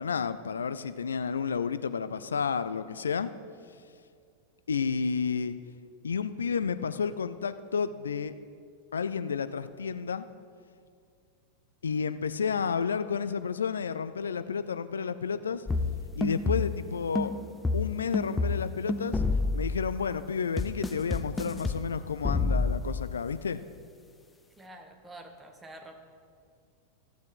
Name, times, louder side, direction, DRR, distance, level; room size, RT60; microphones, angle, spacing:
voice 1, 0.0-3.3 4.7-5.6 6.0-8.3 8.9-10.3 11.8-15.7 16.2-17.3 17.7-19.2 19.5-23.6, left 6 dB, 70° left, 12 dB, 0.4 m, -31 dB
sound 1, 15.7-16.9 17.2-20.0 20.6-21.8 22.2-23.1, left 3 dB, 10° left, 0.6 m, -29 dB
voice 2, 24.6-26.0, right 1 dB, 10° right, 4 dB, 1.2 m, -47 dB
14.5 x 7.1 x 4.6 m, 2.2 s
figure-of-eight pair, 90°, 0 cm